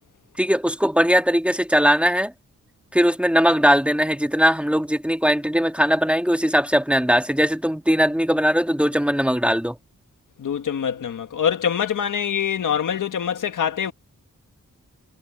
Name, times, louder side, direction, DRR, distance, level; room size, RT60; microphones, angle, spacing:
voice 1, 0.4-2.3 2.9-9.8, equal, 5° right, 1.8 m, -19 dB
voice 2, 10.4-13.9, left 8 dB, 85° left, 1.5 m, -24 dB
wide cardioid pair, 90°, 30 cm